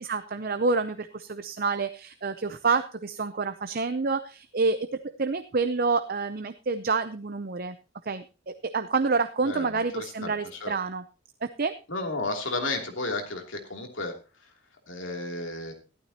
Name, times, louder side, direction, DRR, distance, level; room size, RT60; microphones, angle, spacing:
voice 1, 0.0-7.8 8.1-11.0 11.4-11.7, right 4 dB, 45° right, 10 dB, 0.6 m, -28 dB
voice 2, 9.4-10.7 11.9-14.1 14.4-14.5 14.9-15.7, left 2 dB, 65° left, 3 dB, 2.8 m, -33 dB
14.5 x 12.5 x 2.9 m, 0.32 s
head